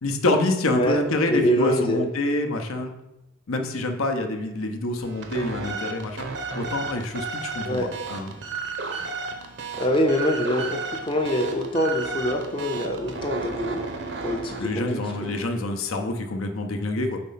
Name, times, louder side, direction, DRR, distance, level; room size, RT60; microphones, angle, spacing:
voice 1, 0.0-2.9 3.5-8.4 14.6-17.2, left 2 dB, 75° left, 5 dB, 0.7 m, -26 dB
voice 2, 1.3-2.0 7.7-7.9 9.8-13.8 14.2-15.3, equal, 25° left, 2 dB, 0.5 m, -25 dB
sound 1, 5.0-15.6, right 4 dB, 55° right, 0.7 m, -34 dB
4.3 x 4.1 x 5.5 m, 0.92 s
head